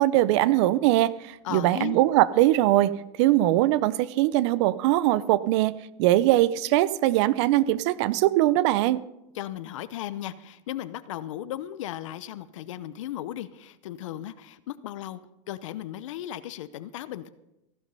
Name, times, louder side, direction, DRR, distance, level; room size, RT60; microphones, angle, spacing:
voice 1, 0.0-2.9 3.2-9.0, right 15 dB, 65° right, 18 dB, 0.7 m, -21 dB
voice 2, 1.4-2.0 9.3-15.2 15.5-17.3, left 12 dB, 80° left, 13 dB, 0.8 m, -36 dB
14.5 x 11.5 x 5.6 m, 0.91 s
supercardioid pair, 125°, 16 cm